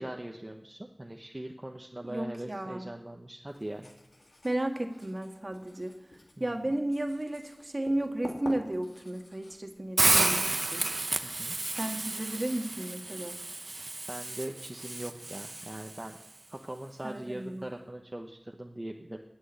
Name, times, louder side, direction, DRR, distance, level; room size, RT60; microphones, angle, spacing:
voice 1, 0.0-3.9 6.4-6.7 11.2-11.6 14.1-16.2 16.5-19.2, right 1 dB, 30° right, 2 dB, 1.0 m, -41 dB
voice 2, 2.1-2.9 4.4-5.9 6.4-10.9 11.7-13.4 17.0-17.6, right 1 dB, 45° right, 5 dB, 1.6 m, -33 dB
Writing, 3.5-11.6, left 1 dB, 85° left, 2.3 m, -49 dB
Hiss, 10.0-16.0, right 2 dB, 65° right, 0.7 m, -31 dB
18.0 x 6.3 x 8.8 m, 0.91 s
wide cardioid pair, 45°, 0 cm